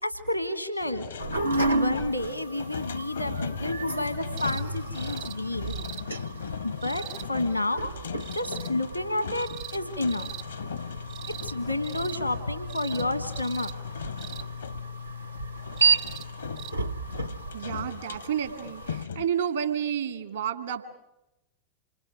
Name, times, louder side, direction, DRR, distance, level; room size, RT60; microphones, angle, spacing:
voice 1, 0.0-1.1 1.7-5.7 6.6-7.9 8.3-10.3 11.4-13.7, left 1 dB, 90° left, 11 dB, 1.5 m, -30 dB
sound 1, 0.8-14.9 15.6-19.3, left 7 dB, 70° left, 0.8 m, -39 dB
sound 2, 1.2-19.0, right 3 dB, 90° right, 0.9 m, -33 dB
sound 3, 4.4-4.6 4.9-5.3 5.7-6.0 6.8-7.3 8.2-8.7 9.3-9.8 10.1-10.4 11.1-11.6 11.8-12.2 12.7-13.0 13.3-13.7 14.2-14.5 15.8-16.2 16.6-16.7 17.8-17.9, right 13 dB, 45° right, 0.8 m, -41 dB
voice 2, 17.5-20.8, right 8 dB, 70° right, 9 dB, 2.2 m, -30 dB
28.0 x 25.0 x 6.3 m, 0.89 s
figure-of-eight pair, 90°, 0 cm